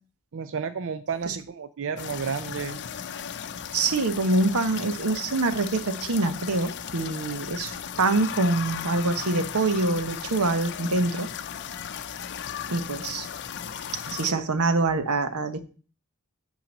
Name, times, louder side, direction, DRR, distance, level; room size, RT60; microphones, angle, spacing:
voice 1, 0.3-2.8 14.3-14.5, right 6 dB, 65° right, 10 dB, 0.5 m, -32 dB
sound 1, 2.0-14.3, left 8 dB, 55° left, 0.6 m, -36 dB
voice 2, 3.7-11.3 12.7-13.3 14.1-15.6, right 2 dB, 90° right, 10 dB, 1.0 m, -25 dB
8.8 x 3.9 x 7.1 m, 0.38 s
head